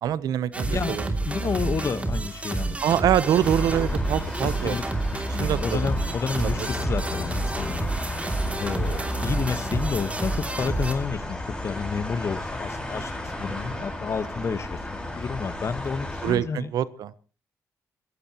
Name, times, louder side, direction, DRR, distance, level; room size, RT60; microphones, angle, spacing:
voice 1, 0.0-1.1 2.8-4.8 5.4-5.8 6.3-6.5 13.5-13.8 16.2-17.1, right 10 dB, 80° right, 17 dB, 0.9 m, -25 dB
sound 1, 0.5-10.9, right 2 dB, 20° right, 2.7 m, -29 dB
voice 2, 0.7-3.0 4.4-4.8 5.1-7.9 8.6-16.7, left 5 dB, 45° left, 13 dB, 1.3 m, -30 dB
sound 2, 3.3-16.4, left 2 dB, 10° left, 5.3 m, -33 dB
26.0 x 15.5 x 3.0 m, 0.34 s
cardioid pair, 85°, 6 cm